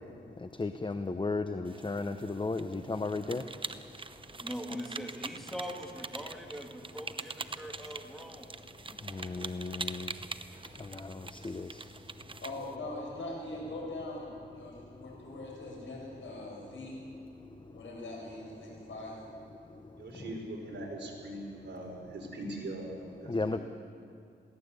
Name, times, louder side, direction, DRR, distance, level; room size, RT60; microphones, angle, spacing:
voice 1, 0.6-3.4 9.1-10.1 10.8-11.8 23.3-23.6, left 3 dB, 25° left, 9 dB, 0.8 m, -34 dB
sound 1, 1.7-12.8, right 3 dB, 25° right, 0.8 m, -44 dB
voice 2, 4.4-8.5, equal, ahead, 1 dB, 2.7 m, -42 dB
voice 3, 12.4-17.0 17.6-19.2, left 2 dB, 75° left, -2 dB, 7.7 m, -42 dB
voice 4, 20.0-23.0 23.2-23.6, right 1 dB, 65° right, -1 dB, 5.6 m, -41 dB
22.0 x 16.5 x 8.2 m, 2.5 s
wide cardioid pair, 90°, 20 cm